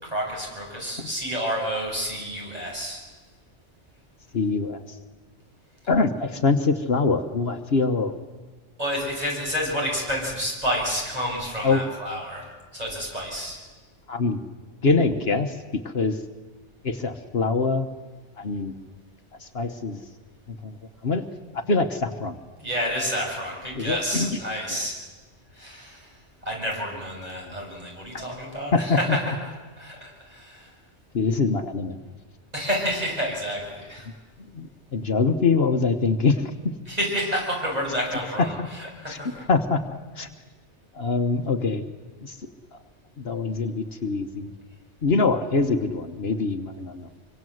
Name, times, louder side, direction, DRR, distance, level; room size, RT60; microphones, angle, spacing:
voice 1, 0.0-3.0 8.8-12.4 12.7-13.6 22.6-24.9 25.6-26.0 26.5-29.5 29.8-30.7 32.5-34.1 36.9-39.4, equal, 35° right, -2 dB, 7.5 m, -29 dB
voice 2, 4.3-4.8 5.9-8.2 11.6-11.9 14.1-14.4 14.8-15.6 15.8-16.2 16.8-17.9 18.4-18.7 19.4-20.0 20.5-20.8 21.0-21.3 21.5-22.4 23.8-24.4 24.7-24.9 27.4-27.6 28.1-28.2 28.7-29.2 31.1-32.0 34.5-36.5 38.4-38.7 39.1-39.2 39.5-39.8 40.2-40.3 40.9-41.9 42.2-42.4 43.2-44.5 45.0-47.1, left 4 dB, 60° left, 7 dB, 1.4 m, -24 dB
25.0 x 24.5 x 7.9 m, 1.3 s
omnidirectional pair, 1.2 m